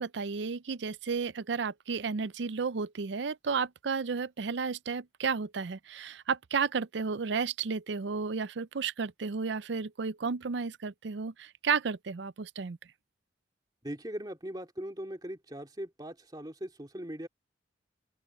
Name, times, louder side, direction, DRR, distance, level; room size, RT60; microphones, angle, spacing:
voice 1, 0.0-12.8, right 5 dB, 75° right, 0.5 m, -32 dB
voice 2, 13.8-17.3, equal, 20° right, 2.5 m, -40 dB
open air
head